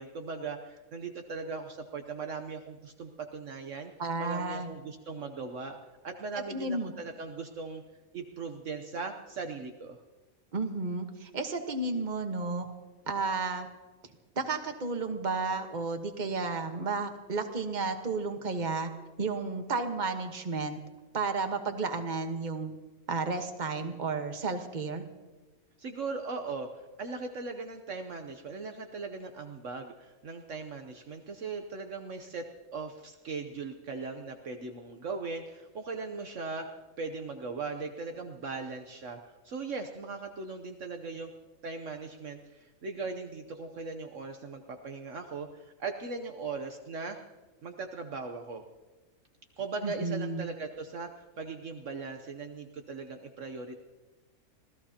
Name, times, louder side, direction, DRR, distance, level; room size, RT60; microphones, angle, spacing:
voice 1, 0.0-3.9 4.2-5.8 6.0-7.8 8.1-10.0 25.8-32.4 32.7-36.7 37.0-41.3 41.6-47.2 47.6-48.6 49.6-53.7, right 4 dB, 60° right, 5 dB, 1.2 m, -39 dB
voice 2, 4.0-4.7 6.5-6.9 10.5-12.7 13.1-13.7 14.3-18.9 19.2-20.8 21.1-22.7 23.1-25.0 49.8-50.4, right 3 dB, 35° right, 5 dB, 1.4 m, -32 dB
26.5 x 17.0 x 2.9 m, 1.2 s
omnidirectional pair, 1.5 m